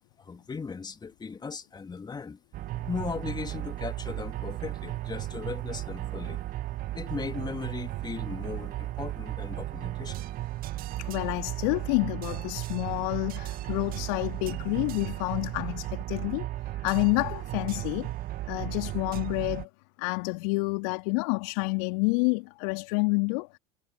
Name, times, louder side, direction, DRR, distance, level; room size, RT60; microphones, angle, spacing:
voice 1, 0.2-2.4 2.9-6.4 6.9-10.2, left 5 dB, 20° left, 3.1 m, -37 dB
sound 1, 2.5-19.7, right 15 dB, 45° right, 2.2 m, -35 dB
voice 2, 11.0-16.5 16.8-18.1 18.5-19.7 20.0-23.6, left 32 dB, 60° left, 2.7 m, -28 dB
figure-of-eight pair, 75°, 21 cm